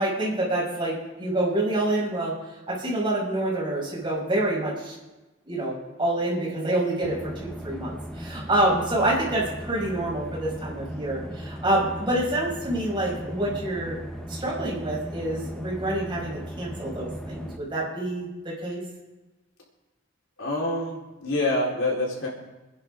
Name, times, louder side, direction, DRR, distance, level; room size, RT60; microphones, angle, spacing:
voice 1, 0.0-2.3 2.7-5.0 5.5-5.7 6.0-14.0 14.3-18.3 18.6-18.8, right 1 dB, 25° right, -5 dB, 5.8 m, -27 dB
sound 1, 7.0-17.6, equal, 5° left, 0.9 m, -37 dB
voice 2, 20.4-22.3, left 2 dB, 90° left, -3 dB, 4.1 m, -26 dB
28.0 x 10.5 x 3.7 m, 1.1 s
head